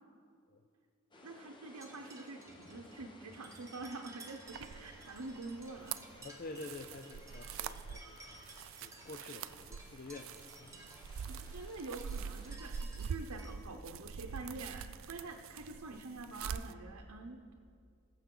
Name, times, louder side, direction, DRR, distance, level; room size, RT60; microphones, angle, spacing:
sound 1, 1.1-12.6, left 1 dB, 20° left, 1.0 m, -59 dB
voice 1, 1.2-6.0 11.3-17.5, right 3 dB, 90° right, 2 dB, 0.8 m, -46 dB
sound 2, 1.7-13.5, right 2 dB, 15° right, 0.9 m, -57 dB
sound 3, 4.5-16.7, right 7 dB, 60° right, 0.3 m, -45 dB
voice 2, 6.2-8.4 8.8-10.7, left 3 dB, 40° left, 5 dB, 0.4 m, -48 dB
20.5 x 7.1 x 3.8 m, 2.4 s
head